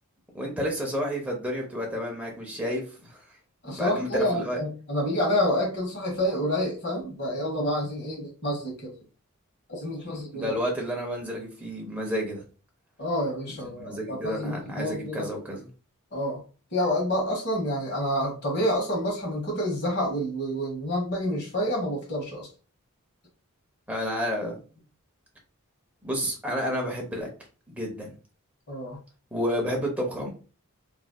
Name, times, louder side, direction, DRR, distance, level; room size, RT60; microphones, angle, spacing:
voice 1, 0.3-3.2 3.7-4.6 10.1-12.4 13.7-15.7 23.9-24.6 26.0-27.3 27.7-28.1 29.3-30.3, equal, 5° right, -1 dB, 0.8 m, -30 dB
voice 2, 3.6-8.9 9.7-10.5 13.0-15.3 16.1-16.4 16.7-22.5 28.7-29.0, equal, 50° left, -1 dB, 1.5 m, -28 dB
3.2 x 2.6 x 2.3 m, 0.35 s
head